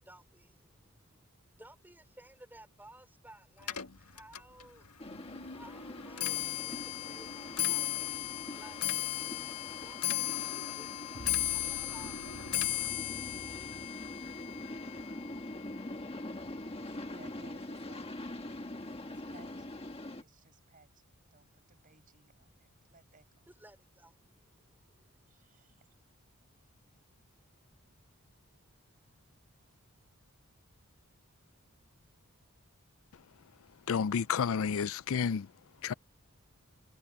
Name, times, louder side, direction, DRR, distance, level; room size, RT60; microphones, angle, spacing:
voice 1, 0.0-1.2 1.5-9.1 9.7-15.4 23.5-25.2, right 1 dB, 10° right, 4.5 m, -58 dB
Clock, 3.6-16.9 17.3-17.7 18.5-18.6 19.0-19.3 19.6-19.7, left 13 dB, 90° left, 1.7 m, -36 dB
sound 1, 5.0-20.2, left 1 dB, 25° left, 1.5 m, -44 dB
sound 2, 11.1-14.6, right 1 dB, 75° right, 5.1 m, -51 dB
voice 2, 17.1-19.9 20.2-23.4 25.3-25.8, right 3 dB, 40° right, 6.6 m, -62 dB
voice 3, 33.9-35.5 35.8-35.9, left 6 dB, 65° left, 0.4 m, -30 dB
head